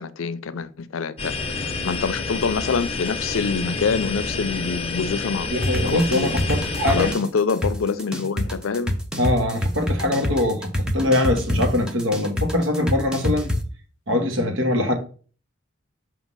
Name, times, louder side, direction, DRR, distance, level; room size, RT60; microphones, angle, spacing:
voice 1, 0.0-1.3 1.8-5.5 5.9-6.3 6.8-9.0, left 5 dB, 90° left, 0.5 m, -25 dB
sound 1, 1.2-7.1, left 3 dB, 30° left, 0.8 m, -29 dB
voice 2, 5.5-7.1 9.2-13.5 14.1-14.9, left 1 dB, 80° right, 1.4 m, -22 dB
sound 2, 5.6-13.6, equal, 5° right, 0.6 m, -24 dB
6.2 x 2.8 x 5.4 m
head